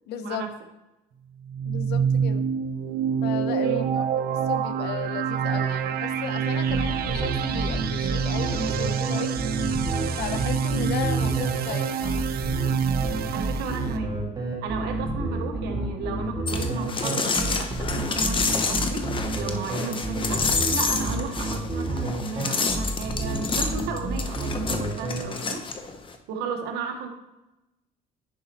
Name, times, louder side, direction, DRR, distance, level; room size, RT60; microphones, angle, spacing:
voice 1, 0.1-0.4 1.6-2.5 3.2-3.9 4.3-9.4 10.2-12.3, left 8 dB, 80° left, 10 dB, 0.7 m, -34 dB
sound 1, 1.4-14.0, right 7 dB, 65° right, 0.6 m, -27 dB
voice 2, 3.6-3.9 13.3-14.2 14.6-19.1 19.4-20.4 20.7-25.7 26.3-27.1, right 5 dB, 85° right, 4 dB, 1.2 m, -34 dB
sound 2, 6.7-25.2, right 2 dB, 25° right, 1.8 m, -29 dB
sound 3, 16.5-26.2, left 4 dB, 30° left, 0.8 m, -28 dB
10.5 x 5.3 x 2.9 m, 0.97 s
cardioid pair, 110°, 17 cm